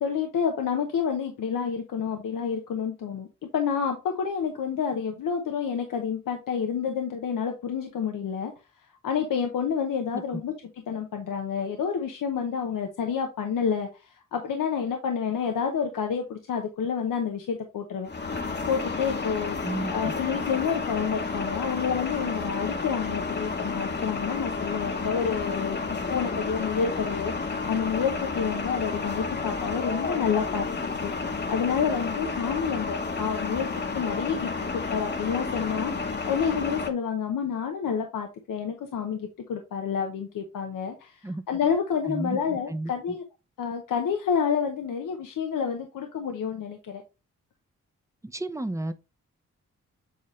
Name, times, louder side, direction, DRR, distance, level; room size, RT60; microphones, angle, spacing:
voice 1, 0.0-8.5 9.0-10.5 10.9-18.1 18.7-19.6 19.9-27.3 27.7-30.7 31.0-31.1 31.5-43.2 43.6-47.0, left 7 dB, 90° left, 0.9 m, -29 dB
sound 1, 18.0-36.9, left 4 dB, 35° left, 1.1 m, -31 dB
voice 2, 19.6-20.1 41.2-41.4 42.0-42.4 42.7-43.2 48.2-48.9, right 1 dB, 10° right, 0.7 m, -32 dB
7.7 x 4.1 x 3.1 m
cardioid pair, 60°, 32 cm